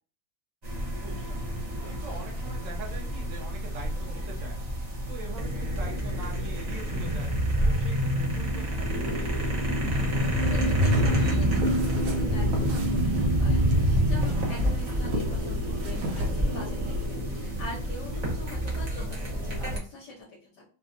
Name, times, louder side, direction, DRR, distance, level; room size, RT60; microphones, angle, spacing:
sound 1, 0.6-19.8, equal, 50° right, 0.4 m, -27 dB
voice 1, 0.9-1.4 1.9-4.7 5.1-7.3 7.6-10.0 14.4-14.6, right 3 dB, 70° right, -1 dB, 1.5 m, -43 dB
sound 2, 9.9-17.1, left 1 dB, 85° right, 1.6 m, -35 dB
voice 2, 10.4-20.6, left 3 dB, 65° left, -3 dB, 1.3 m, -43 dB
3.7 x 2.3 x 2.6 m, 0.42 s
omnidirectional pair, 2.2 m